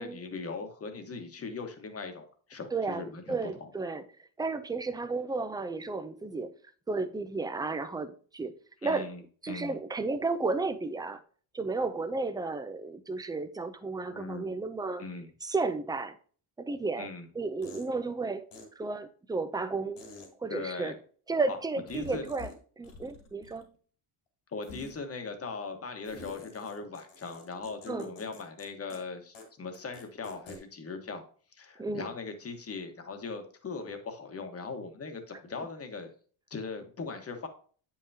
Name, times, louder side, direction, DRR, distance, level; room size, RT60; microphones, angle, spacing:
voice 1, 0.0-3.7 8.8-9.2 9.5-9.8 14.1-14.5 15.0-15.3 17.0-17.3 20.5-20.9 21.5-21.6 21.9-22.3 24.5-31.2 31.5-36.1 36.5-37.5, left 4 dB, 30° left, 1.2 m, -39 dB
voice 2, 2.7-4.0 4.4-6.5 6.9-8.5 8.8-9.1 9.4-11.2 11.5-15.0 15.4-16.2 16.6-17.1 17.4-18.5 18.8-20.0 20.4-21.0 21.3-22.5 22.8-23.7 27.9-28.1 31.8-32.1, right 3 dB, 10° right, 0.4 m, -33 dB
sound 1, 16.7-16.8 17.6-17.9 18.5-18.6 20.0-20.3 21.9-22.6 22.8-23.7 24.6-25.0 26.0-28.7 28.9-29.0 29.4-29.5 29.7-30.6, left 3 dB, 80° left, 3.4 m, -48 dB
8.8 x 5.6 x 2.7 m
cardioid pair, 165°, 47 cm